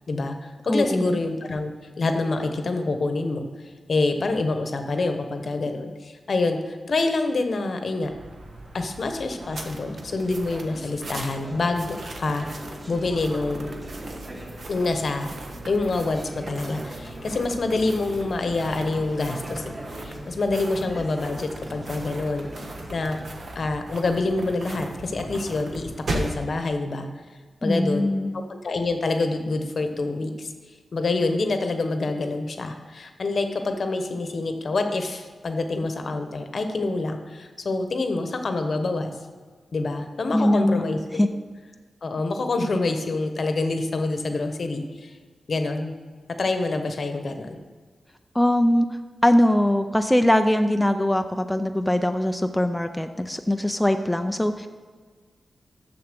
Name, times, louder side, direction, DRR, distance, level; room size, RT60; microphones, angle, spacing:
voice 1, 0.1-1.7 2.0-3.5 3.9-8.1 8.7-12.5 12.9-13.7 14.7-15.3 15.7-23.2 23.5-27.1 27.6-28.1 28.3-30.5 30.9-39.1 39.7-41.4 42.0-45.1 45.5-45.9 46.4-47.6, left 3 dB, 60° left, 6 dB, 0.9 m, -26 dB
voice 2, 0.7-1.2 27.6-28.3 40.3-40.8 41.1-41.3 48.3-48.9 49.2-54.7, left 1 dB, 5° left, 6 dB, 0.4 m, -21 dB
sound 1, 8.0-26.4, right 2 dB, 60° right, 1.1 m, -38 dB
Conversation / Chatter, 9.3-23.3, right 1 dB, 25° right, 1.7 m, -41 dB
6.9 x 6.8 x 6.7 m, 1.5 s
wide cardioid pair, 100°, 0 cm